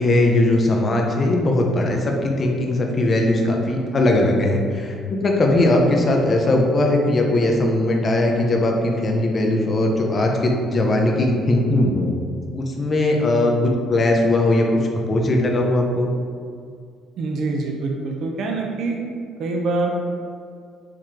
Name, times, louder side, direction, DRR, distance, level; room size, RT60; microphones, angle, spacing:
voice 1, 0.0-12.1 12.5-13.5 13.9-16.1, left 1 dB, 30° left, 1 dB, 0.7 m, -19 dB
voice 2, 17.2-19.0 19.4-19.9, right 3 dB, 60° right, 0 dB, 0.6 m, -25 dB
4.7 x 3.0 x 3.7 m, 2.2 s
cardioid pair, 125°, 0 cm